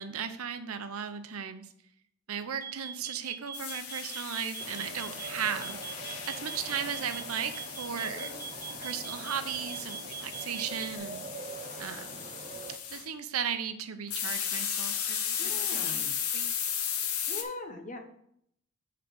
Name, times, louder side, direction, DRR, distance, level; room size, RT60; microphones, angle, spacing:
voice 1, 0.0-1.7 2.3-8.3 8.8-11.2 11.8-12.3 12.9-16.1 16.3-16.7, right 7 dB, 80° right, 10 dB, 0.7 m, -36 dB
sound 1, 2.6-11.0, right 8 dB, 20° left, 1.6 m, -41 dB
sound 2, 3.5-13.1 14.1-17.4, left 8 dB, 85° left, 0.8 m, -36 dB
sound 3, 4.6-12.8, right 3 dB, 35° right, 0.5 m, -44 dB
voice 2, 8.0-8.4 15.4-16.1 17.3-18.0, left 3 dB, 35° left, 4 dB, 0.9 m, -41 dB
6.8 x 3.9 x 6.1 m, 0.71 s
head